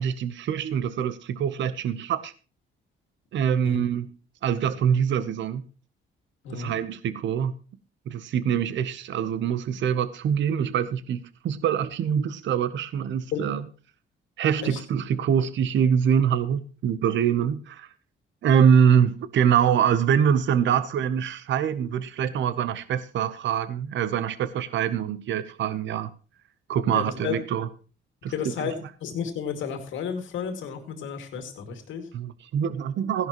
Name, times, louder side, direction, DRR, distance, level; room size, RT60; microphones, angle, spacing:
voice 1, 0.0-2.3 3.3-4.1 4.4-5.6 6.5-7.5 8.1-13.6 14.4-17.9 18.4-26.1 26.7-27.7 28.2-28.3 28.6-28.7 32.1-33.3, right 8 dB, 70° right, 0.9 m, -24 dB
voice 2, 26.7-27.3 28.3-32.1, left 7 dB, 80° left, 2.3 m, -32 dB
15.5 x 11.0 x 3.0 m
cardioid pair, 90°, 20 cm